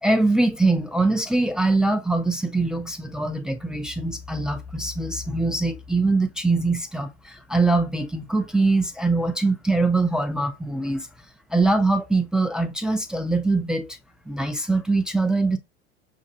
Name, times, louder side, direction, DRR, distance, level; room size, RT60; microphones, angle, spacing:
voice 1, 0.0-11.1 11.5-14.0 14.3-15.6, right 2 dB, ahead, 0.3 m, -23 dB
6.5 x 2.3 x 2.6 m
figure-of-eight pair, 80°, 35 cm